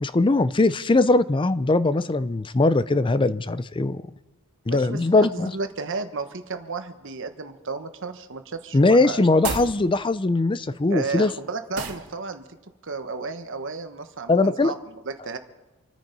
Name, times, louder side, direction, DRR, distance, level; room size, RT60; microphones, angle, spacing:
voice 1, 0.0-4.0 4.7-5.5 8.7-11.3 14.3-14.7, left 2 dB, 25° left, 15 dB, 0.5 m, -20 dB
voice 2, 4.7-9.6 10.9-12.5 12.8-14.7 15.0-15.4, right 4 dB, 60° right, 8 dB, 1.2 m, -33 dB
sound 1, 9.3-9.8 11.7-12.1, right 4 dB, 90° right, 1.9 m, -30 dB
27.5 x 9.5 x 5.3 m, 1.1 s
head